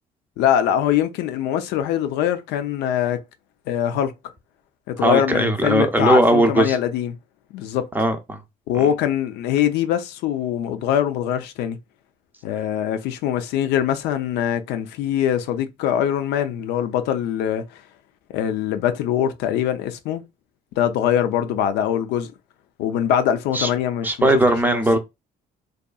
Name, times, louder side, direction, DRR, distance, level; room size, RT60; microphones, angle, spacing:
voice 1, 0.4-3.2 3.7-4.1 4.9-7.2 7.5-7.9 8.7-11.8 12.4-17.8 18.3-20.2 20.8-22.3 22.8-24.3 24.7-25.0, left 10 dB, 85° left, 0.4 m, -23 dB
voice 2, 5.0-6.8 7.9-8.4 8.7-8.9 23.5-23.7 24.0-25.0, right 1 dB, 10° right, 0.5 m, -18 dB
2.7 x 2.3 x 2.2 m
cardioid pair, 110°, 17 cm